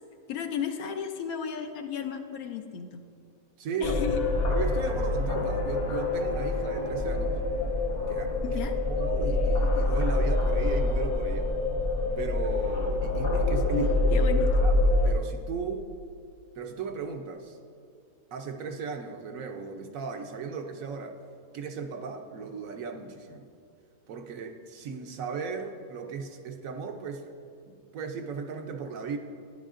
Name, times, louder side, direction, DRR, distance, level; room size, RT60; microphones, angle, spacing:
voice 1, 0.3-3.0 3.8-4.2 8.4-8.8 13.7-13.9 14.1-14.6, left 7 dB, 75° left, 6 dB, 1.0 m, -33 dB
voice 2, 3.6-4.0 4.5-7.4 8.1-8.4 8.9-11.5 12.2-13.9 14.6-15.9 16.6-17.6 18.3-21.2 21.5-23.5 24.1-27.3 27.7-29.2, right 5 dB, 70° right, 5 dB, 1.0 m, -36 dB
sound 1, 3.8-15.1, left 2 dB, 55° left, 1.5 m, -26 dB
12.0 x 10.0 x 2.5 m, 2.3 s
omnidirectional pair, 1.6 m